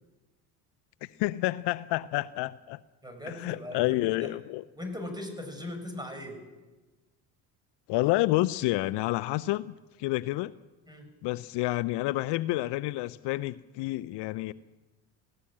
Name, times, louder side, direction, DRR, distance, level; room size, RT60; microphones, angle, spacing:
voice 1, 1.0-2.8 3.3-4.6 7.9-10.5 11.2-14.5, left 18 dB, 65° left, 15 dB, 0.7 m, -29 dB
voice 2, 3.0-4.3 4.8-6.4 10.9-11.0, left 1 dB, 10° right, 6 dB, 6.9 m, -39 dB
19.0 x 17.5 x 8.8 m, 1.2 s
supercardioid pair, 90°, 45 cm